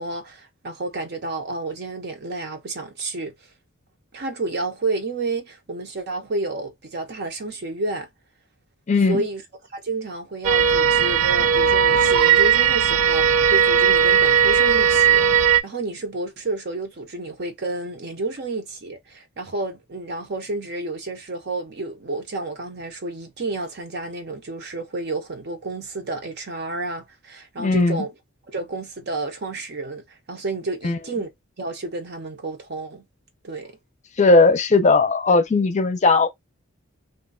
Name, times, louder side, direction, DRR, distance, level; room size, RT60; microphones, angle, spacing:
voice 1, 0.0-3.3 4.1-8.1 9.1-9.4 9.7-28.1 28.5-31.3 31.6-33.0 33.4-33.8, right 2 dB, 50° right, 0.7 m, -30 dB
voice 2, 8.9-9.2 27.6-28.0 30.8-31.0 34.2-36.3, left 3 dB, 35° left, 0.5 m, -17 dB
sound 1, 10.4-15.6, right 8 dB, 90° right, 0.4 m, -17 dB
2.5 x 2.2 x 3.7 m
head